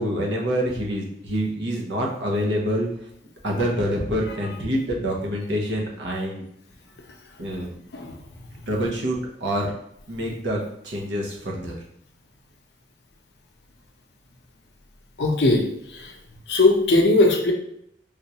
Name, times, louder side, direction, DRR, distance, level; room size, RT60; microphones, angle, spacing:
voice 1, 0.0-2.9 3.4-6.4 7.4-7.8 8.7-9.7 10.1-11.8, equal, 80° right, -1 dB, 0.8 m, -26 dB
voice 2, 15.2-16.1 16.5-17.5, left 2 dB, 70° left, 2 dB, 0.6 m, -19 dB
3.6 x 2.4 x 2.8 m, 0.73 s
head